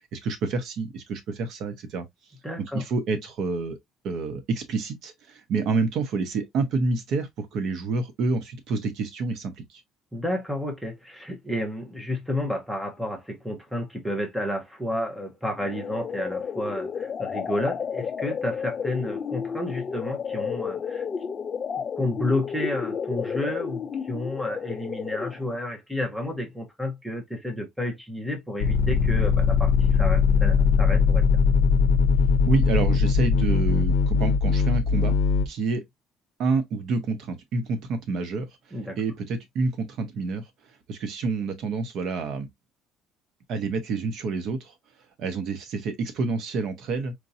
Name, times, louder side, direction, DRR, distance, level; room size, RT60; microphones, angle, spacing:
voice 1, 0.1-2.0 2.7-3.8 4.0-9.8 32.5-35.2 35.5-35.8 36.4-42.5 43.5-44.7 45.2-47.1, right 4 dB, 50° right, 0.9 m, -28 dB
voice 2, 2.4-2.8 10.1-21.0 22.0-31.2 38.7-39.0, left 1 dB, ahead, 0.9 m, -31 dB
sound 1, 15.6-25.6, left 6 dB, 30° left, 0.3 m, -32 dB
sound 2, 28.6-35.5, left 5 dB, 85° left, 0.5 m, -20 dB
4.5 x 2.7 x 2.6 m
cardioid pair, 175°, 0 cm